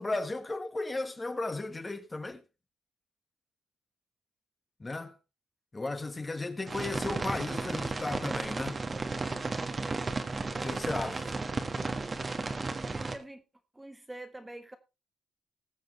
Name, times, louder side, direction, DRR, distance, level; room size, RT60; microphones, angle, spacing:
voice 1, 0.0-2.4 4.8-5.1 5.7-8.8 10.6-11.2, left 2 dB, 20° left, 1.5 m, -35 dB
sound 1, 6.7-13.2, right 3 dB, 30° right, 1.4 m, -34 dB
voice 2, 11.0-11.6 12.2-12.5 12.8-13.4 13.7-14.8, right 1 dB, 10° right, 1.2 m, -47 dB
20.0 x 6.9 x 3.1 m
cardioid pair, 90°, 0 cm